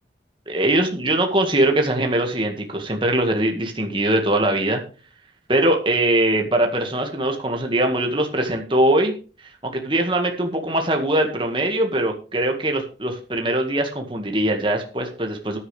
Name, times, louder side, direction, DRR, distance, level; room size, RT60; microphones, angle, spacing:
voice 1, 0.5-4.8 5.5-9.1 9.6-15.6, right 1 dB, 25° right, 3 dB, 1.9 m, -21 dB
13.5 x 10.5 x 3.4 m, 0.35 s
head